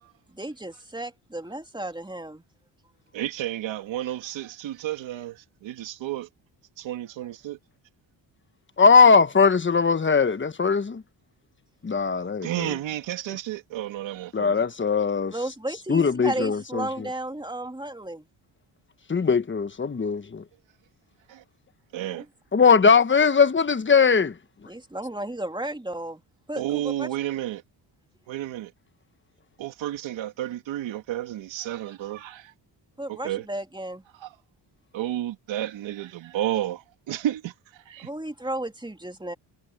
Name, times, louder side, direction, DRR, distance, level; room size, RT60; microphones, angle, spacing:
voice 1, 0.3-2.4 15.3-18.3 22.1-22.3 24.7-26.2 26.5-27.1 33.0-34.0 38.0-39.3, right 1 dB, 10° right, 2.6 m, -33 dB
voice 2, 3.1-6.3 6.8-7.6 12.4-14.7 21.3-21.4 21.9-22.2 26.5-27.6 28.3-28.7 29.6-32.5 33.1-33.4 34.2-34.3 34.9-38.1, right 13 dB, 85° right, 3.0 m, -31 dB
voice 3, 8.8-11.0 11.8-12.7 14.3-15.3 15.9-16.9 19.1-20.4 22.5-24.3, left 5 dB, 25° left, 1.1 m, -20 dB
cardioid pair, 70°, 45 cm